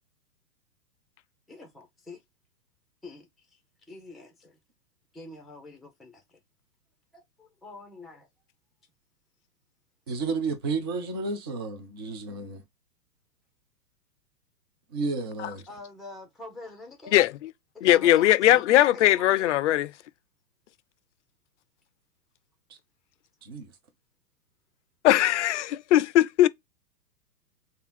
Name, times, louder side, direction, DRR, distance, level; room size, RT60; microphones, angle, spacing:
voice 1, 1.5-2.2 3.0-3.6 3.9-4.6 5.1-6.4 7.1-8.3 10.1-10.2 15.7-17.2 17.7-19.5, left 2 dB, ahead, 0.8 m, -46 dB
voice 2, 10.1-12.6 14.9-15.6 23.4-23.7, right 3 dB, 20° right, 0.3 m, -31 dB
voice 3, 17.8-19.9 25.0-26.5, left 13 dB, 50° left, 0.4 m, -20 dB
3.5 x 2.4 x 4.2 m
hypercardioid pair, 120°, 49 cm